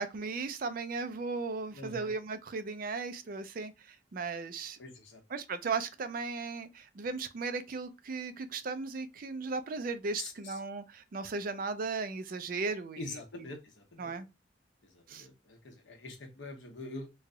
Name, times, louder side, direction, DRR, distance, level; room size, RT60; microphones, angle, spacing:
voice 1, 0.0-4.8 5.3-13.4 14.0-14.3 15.1-15.3, right 4 dB, 50° right, 0.4 m, -36 dB
voice 2, 1.7-2.1 4.8-5.2 10.2-10.6 13.0-14.1 14.8-17.1, left 2 dB, 90° left, 1.0 m, -44 dB
3.2 x 2.2 x 3.7 m
head